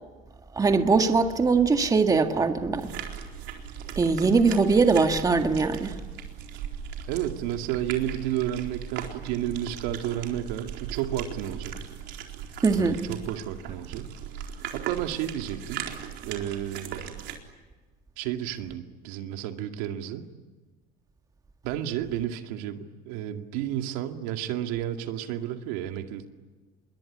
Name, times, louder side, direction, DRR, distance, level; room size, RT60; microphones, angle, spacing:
voice 1, 0.5-2.9 4.0-6.0 12.6-13.0, right 4 dB, 20° right, 6 dB, 1.9 m, -21 dB
sound 1, 2.8-17.4, right 9 dB, 65° right, 4.2 m, -38 dB
voice 2, 7.1-11.8 12.8-14.1 14.7-15.9 16.2-17.0 18.2-20.2 21.6-26.2, right 11 dB, 85° right, 5 dB, 2.3 m, -31 dB
27.0 x 22.5 x 9.7 m, 1.3 s
cardioid pair, 130°, 20 cm